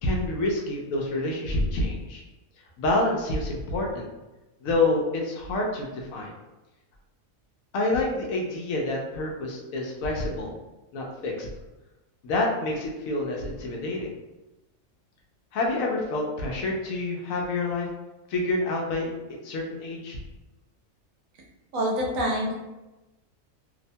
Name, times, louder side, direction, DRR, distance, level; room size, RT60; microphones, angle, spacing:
voice 1, 0.0-2.2 2.8-4.1 4.6-6.3 7.7-10.5 10.9-11.5 12.2-14.1 15.5-17.9 18.3-19.1 19.4-20.2, left 2 dB, 75° left, -1 dB, 1.0 m, -27 dB
voice 2, 21.7-22.5, equal, 75° right, -2 dB, 1.1 m, -26 dB
2.8 x 2.1 x 2.6 m, 1.1 s
omnidirectional pair, 1.5 m